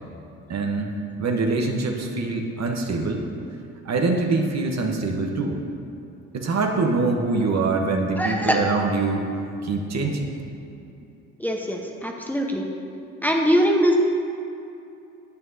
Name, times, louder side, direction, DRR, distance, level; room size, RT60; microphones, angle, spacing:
voice 1, 0.5-3.2 3.8-5.6 6.3-9.2 9.6-10.3, right 3 dB, 45° right, 2 dB, 1.1 m, -24 dB
voice 2, 8.2-8.6 11.4-12.6 13.2-13.9, equal, 5° left, 0 dB, 1.0 m, -22 dB
9.5 x 9.0 x 2.8 m, 2.7 s
hypercardioid pair, 50°, 36 cm